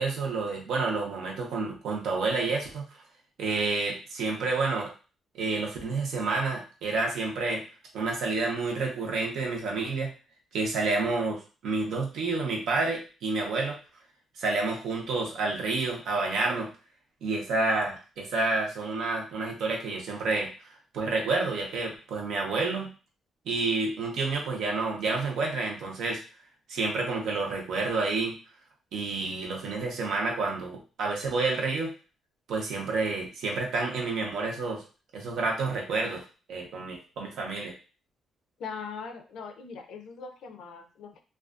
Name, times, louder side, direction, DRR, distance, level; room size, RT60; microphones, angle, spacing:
voice 1, 0.0-2.8 3.4-4.9 5.3-7.6 7.9-10.1 10.5-13.8 14.4-16.7 17.2-22.9 23.5-26.2 26.7-28.4 28.9-31.9 32.5-34.8 35.1-36.2 36.5-37.7, right 3 dB, 75° right, 0 dB, 0.7 m, -29 dB
voice 2, 38.6-41.2, left 5 dB, 70° left, 6 dB, 0.4 m, -40 dB
2.4 x 2.3 x 2.4 m, 0.35 s
cardioid pair, 90°, 0 cm